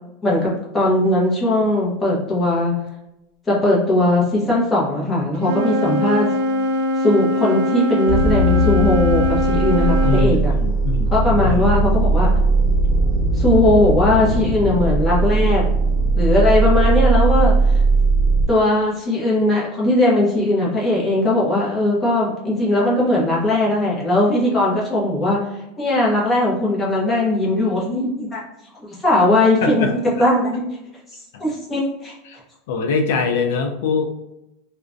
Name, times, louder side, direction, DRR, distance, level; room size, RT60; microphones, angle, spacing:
voice 1, 0.2-2.7 3.5-6.3 7.0-10.5 11.1-12.3 13.4-15.6 16.2-17.5 18.5-25.4 25.8-28.4 28.8-29.9 30.2-30.6 31.4-32.1, left 1 dB, 10° left, -5 dB, 0.7 m, -19 dB
Wind instrument woodwind instrument, 5.4-10.3, left 1 dB, 50° right, 0.3 m, -22 dB
sound 1, 8.1-18.5, right 2 dB, 5° right, 1.3 m, -18 dB
voice 2, 10.0-11.2 11.4-11.8 29.6-29.9 30.2-30.3 31.3-31.4 32.3-32.4 32.7-34.0, left 5 dB, 75° left, 4 dB, 0.4 m, -23 dB
2.4 x 2.1 x 2.5 m, 0.89 s
supercardioid pair, 170°, 0 cm